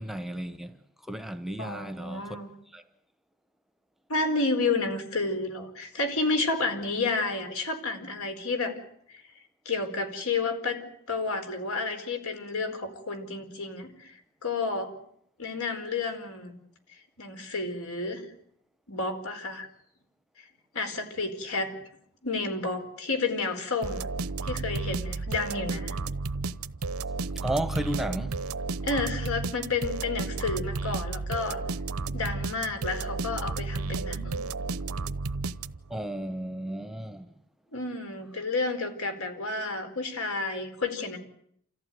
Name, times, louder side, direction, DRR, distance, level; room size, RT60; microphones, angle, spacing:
voice 1, 0.0-2.4 2.7-2.8 27.4-28.4 35.9-37.3, right 1 dB, ahead, 1.0 m, -33 dB
voice 2, 1.6-2.5 4.1-8.7 9.1-9.2 9.6-14.9 15.4-16.5 16.9-18.2 18.9-19.7 20.7-21.7 22.2-24.1 24.4-26.0 28.8-31.6 32.1-34.4 37.7-41.2, left 3 dB, 75° left, 4.6 m, -31 dB
sound 1, 23.8-36.0, right 3 dB, 85° right, 0.9 m, -32 dB
29.0 x 14.5 x 9.4 m
head